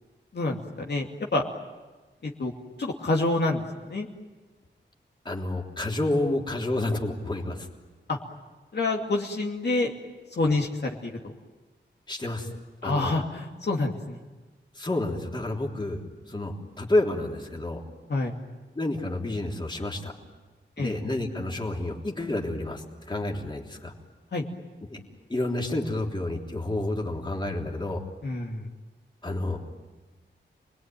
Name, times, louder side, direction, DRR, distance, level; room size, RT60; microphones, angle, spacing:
voice 1, 0.3-1.4 2.2-2.5 2.8-4.1 8.1-8.2 8.7-9.9 10.4-11.3 12.8-14.2 18.1-18.3 20.8-20.9 24.3-24.5 28.2-28.6, left 2 dB, 60° left, -1 dB, 2.6 m, -27 dB
voice 2, 5.2-7.7 12.1-12.5 12.8-13.1 14.7-17.8 18.7-20.1 20.8-23.9 24.9-25.0 25.3-28.0 29.2-29.6, left 2 dB, 25° left, 0 dB, 3.4 m, -29 dB
29.0 x 21.5 x 9.3 m, 1.2 s
wide cardioid pair, 115°, 20 cm